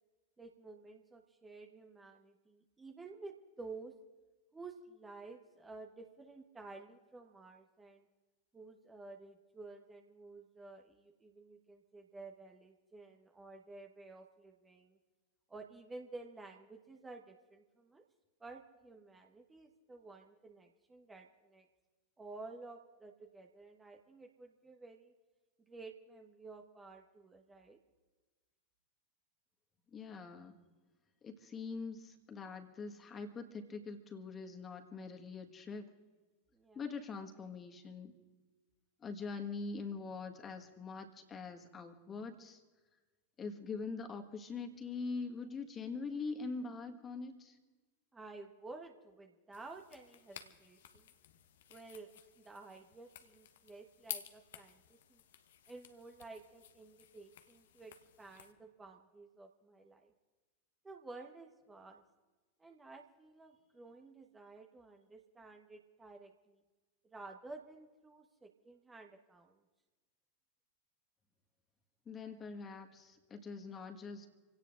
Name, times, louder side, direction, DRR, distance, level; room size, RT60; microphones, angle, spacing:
voice 1, 0.4-4.0 4.5-8.1 8.5-15.0 15.5-18.0 18.4-21.7 22.2-25.1 25.6-27.8 36.5-36.8 48.1-51.1 51.7-55.2 55.7-60.1 60.8-62.0 62.6-66.6 67.0-69.6, right 3 dB, 15° right, 4 dB, 1.2 m, -52 dB
voice 2, 29.9-30.5 31.2-35.9 36.7-38.1 39.0-42.6 43.4-47.6 72.0-74.3, left 4 dB, 20° left, 4 dB, 1.6 m, -43 dB
sound 1, 49.5-58.5, left 10 dB, 60° left, 1.0 m, -53 dB
27.5 x 17.0 x 2.6 m, 1.3 s
figure-of-eight pair, 90°, 0 cm